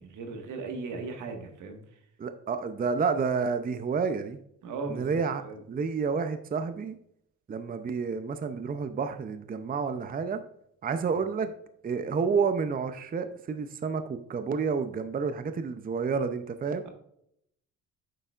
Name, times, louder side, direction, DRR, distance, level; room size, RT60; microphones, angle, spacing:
voice 1, 0.0-1.8 4.6-5.6 11.1-11.2, right 4 dB, 80° right, 4 dB, 1.7 m, -38 dB
voice 2, 2.2-4.4 4.9-5.4 5.7-7.0 7.5-10.4 10.8-11.5 11.8-16.8, right 5 dB, 30° right, 9 dB, 0.6 m, -30 dB
9.1 x 6.7 x 2.5 m, 0.74 s
cardioid pair, 90°, 30 cm